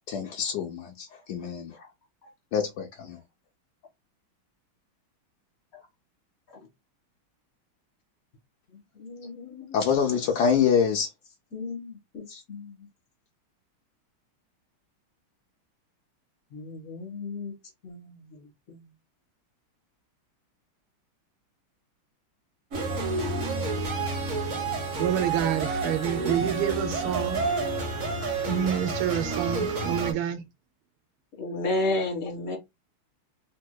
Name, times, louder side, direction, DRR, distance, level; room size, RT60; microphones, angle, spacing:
voice 1, 0.1-1.8 2.5-3.2 9.7-11.1, left 7 dB, 85° left, 0.9 m, -25 dB
voice 2, 9.0-9.9 11.5-12.9 16.5-17.5 17.8-18.4 18.7-18.8 31.4-32.6, left 2 dB, 45° left, 1.7 m, -33 dB
sound 1, 22.7-30.1, right 3 dB, 45° right, 1.2 m, -29 dB
voice 3, 25.0-27.5 28.5-30.4, right 10 dB, 85° right, 1.5 m, -28 dB
3.5 x 2.8 x 2.2 m
omnidirectional pair, 2.4 m